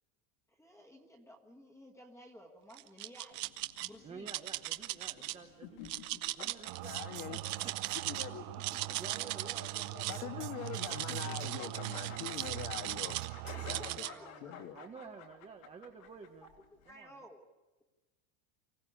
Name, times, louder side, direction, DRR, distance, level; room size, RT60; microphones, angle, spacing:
voice 1, 0.5-3.4 3.8-4.3 6.5-6.9 7.3-7.7 9.1-9.2 13.5-13.7 14.0-14.6 16.7-17.4, equal, 5° left, 0 dB, 1.5 m, -55 dB
sound 1, 2.7-3.9 4.3-5.3 5.8-8.3 8.5-10.2 10.7-13.3 13.7-14.1, right 18 dB, 45° right, 0.8 m, -38 dB
sound 2, 3.3-16.9, left 8 dB, 75° left, 3.4 m, -53 dB
voice 2, 4.0-5.8 6.3-6.8 7.3-7.7 9.0-9.7 10.1-10.5 13.9-16.5 16.9-17.2, right 5 dB, 15° right, 3 dB, 0.9 m, -51 dB
sound 3, 6.6-14.0, right 18 dB, 75° right, 0.8 m, -43 dB
voice 3, 6.8-7.4 8.1-8.5 10.1-13.2 13.7-13.8 14.4-14.8, left 12 dB, 45° left, 8 dB, 1.6 m, -43 dB
24.5 x 16.0 x 9.8 m, 1.2 s
cardioid pair, 165°, 42 cm